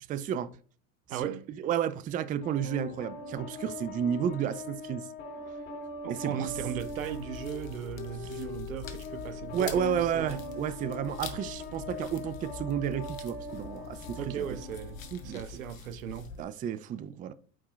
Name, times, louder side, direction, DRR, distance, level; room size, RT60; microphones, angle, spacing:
voice 1, 0.1-0.5 1.1-1.3 1.6-5.1 6.1-6.5 9.5-14.4 15.1-15.6 16.4-17.3, right 9 dB, 20° right, 0.4 m, -32 dB
voice 2, 1.1-1.4 6.0-10.4 14.2-16.4, right 9 dB, 85° right, 0.6 m, -37 dB
sound 1, 2.4-15.4, left 3 dB, 35° left, 2.7 m, -42 dB
sound 2, 6.4-16.4, left 5 dB, 85° left, 0.9 m, -44 dB
9.0 x 4.3 x 2.4 m
hypercardioid pair, 85°, 39 cm